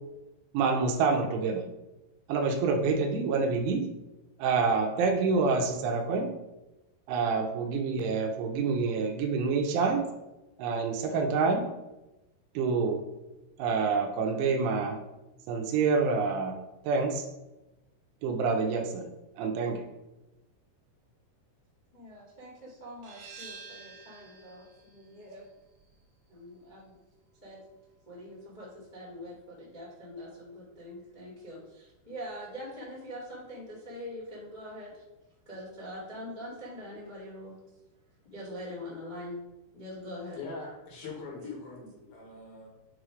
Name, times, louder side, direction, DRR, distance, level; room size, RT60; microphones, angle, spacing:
voice 1, 0.5-1.6 2.3-3.8 4.4-6.3 7.1-10.0 10.6-11.6 12.6-13.0 13.6-15.0 15.5-16.6 16.8-17.3 18.2-19.1 19.4-19.8, right 4 dB, 80° right, 4 dB, 2.9 m, -27 dB
voice 2, 21.9-25.4 26.3-26.9 27.4-27.6 28.0-35.0 35.4-37.5 38.2-39.4 39.7-40.4 41.4-41.5, left 1 dB, 80° left, -7 dB, 0.4 m, -43 dB
sound 1, 23.0-28.4, right 4 dB, 60° right, 2.4 m, -51 dB
voice 3, 40.4-42.7, left 3 dB, 65° left, -1 dB, 2.6 m, -42 dB
9.2 x 3.1 x 4.9 m, 0.98 s
omnidirectional pair, 5.8 m